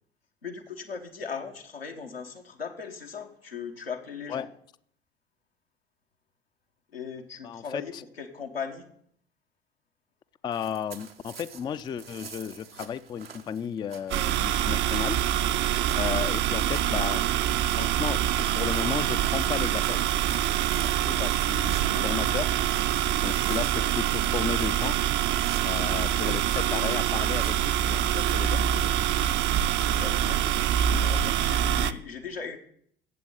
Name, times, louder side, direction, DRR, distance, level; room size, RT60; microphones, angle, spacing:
voice 1, 0.4-4.5 6.9-8.9 21.7-22.1 26.6-27.0 29.8-32.6, left 6 dB, 85° left, 2 dB, 1.2 m, -38 dB
voice 2, 7.4-8.0 10.4-15.2 16.0-17.2 17.8-18.2 18.5-20.0 20.8-22.5 23.2-25.0 25.6-28.6, left 8 dB, 15° left, 15 dB, 0.3 m, -34 dB
sound 1, 10.5-28.4, right 7 dB, 85° right, 0.9 m, -46 dB
sound 2, 14.1-31.9, right 11 dB, 40° right, 0.5 m, -25 dB
16.0 x 7.4 x 3.9 m, 0.64 s
figure-of-eight pair, 65°, 29 cm